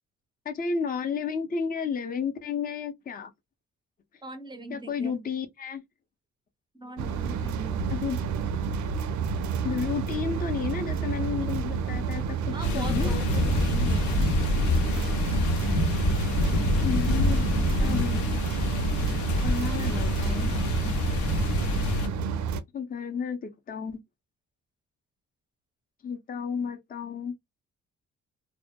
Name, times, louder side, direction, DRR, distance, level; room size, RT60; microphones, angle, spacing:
voice 1, 0.4-3.3 4.7-5.8 7.9-8.2 9.6-13.2 16.8-18.3 19.4-20.5 22.7-24.0 26.0-27.3, left 6 dB, 30° left, 0.6 m, -32 dB
voice 2, 4.2-5.2 6.8-7.9 12.5-14.3, right 3 dB, 15° right, 0.5 m, -40 dB
sound 1, 7.0-22.6, right 6 dB, 70° right, 0.5 m, -30 dB
sound 2, 12.6-22.1, left 2 dB, 75° left, 0.6 m, -26 dB
2.1 x 2.0 x 2.8 m
cardioid pair, 90°, 30 cm